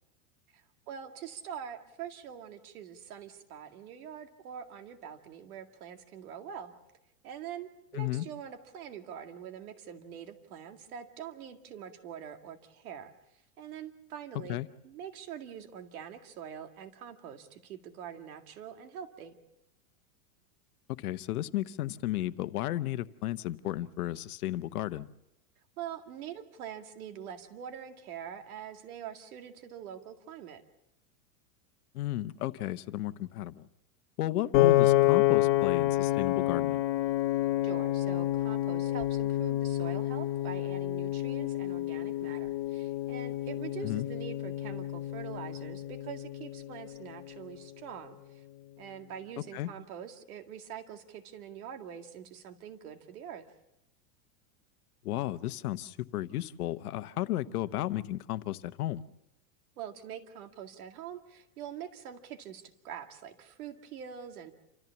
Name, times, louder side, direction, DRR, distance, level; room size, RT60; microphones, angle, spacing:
voice 1, 0.5-6.7 7.2-13.1 13.6-14.6 14.8-19.3 25.8-30.6 34.2-34.5 37.6-48.4 48.8-53.5 57.4-57.8 59.8-64.5, right 9 dB, 75° right, 6 dB, 2.2 m, -44 dB
voice 2, 7.9-8.3 14.3-14.7 20.9-25.1 31.9-33.7 34.2-36.8 43.8-44.1 49.5-49.7 55.0-59.0, left 14 dB, 85° left, 13 dB, 1.0 m, -34 dB
Piano, 34.5-46.8, left 15 dB, 50° left, 1.4 m, -28 dB
28.0 x 14.0 x 7.1 m, 0.91 s
supercardioid pair, 155°, 43 cm